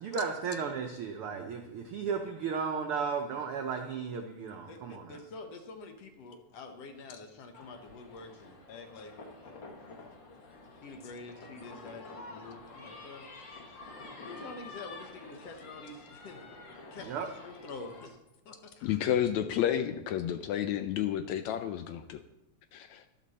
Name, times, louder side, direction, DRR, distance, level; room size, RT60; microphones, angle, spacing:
voice 1, 0.0-5.2 17.0-17.3, right 5 dB, 75° right, 4 dB, 1.2 m, -34 dB
voice 2, 4.7-9.1 9.4-10.1 10.8-13.3 14.2-16.4 16.9-18.2 18.5-19.0, left 3 dB, 60° left, 5 dB, 2.0 m, -47 dB
sound 1, 7.5-18.1, left 3 dB, 45° left, 2.0 m, -49 dB
voice 3, 18.8-22.2 22.7-23.0, left 10 dB, 75° left, 9 dB, 1.8 m, -31 dB
12.5 x 11.5 x 4.2 m, 0.89 s
omnidirectional pair, 3.6 m